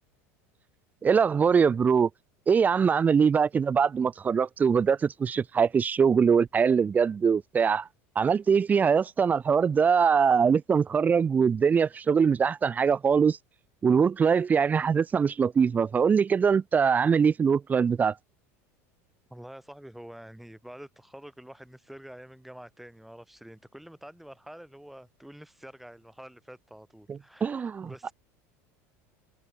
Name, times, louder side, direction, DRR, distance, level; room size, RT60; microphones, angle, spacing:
voice 1, 1.0-2.1 2.5-7.9 8.2-13.4 13.8-18.2 27.1-28.1, right 6 dB, 20° right, 0.5 m, -23 dB
voice 2, 19.3-28.1, right 1 dB, ahead, 1.9 m, -47 dB
supercardioid pair, 115°, 7 cm